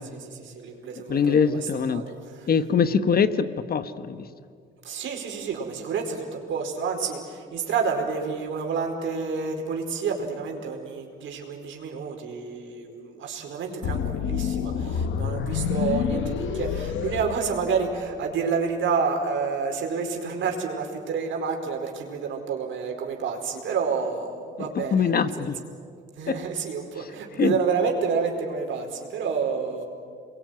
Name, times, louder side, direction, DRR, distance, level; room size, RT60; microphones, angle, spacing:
voice 1, 0.0-2.5 4.8-25.5 26.2-29.8, right 5 dB, 75° right, 2 dB, 4.8 m, -29 dB
voice 2, 1.1-2.0 2.5-4.3 24.9-25.6 26.3-26.4 27.4-27.6, left 6 dB, 50° left, 11 dB, 1.4 m, -23 dB
sound 1, 13.8-18.1, left 7 dB, 75° left, 1.3 m, -28 dB
28.0 x 22.5 x 9.4 m, 2.2 s
cardioid pair, 90°, 20 cm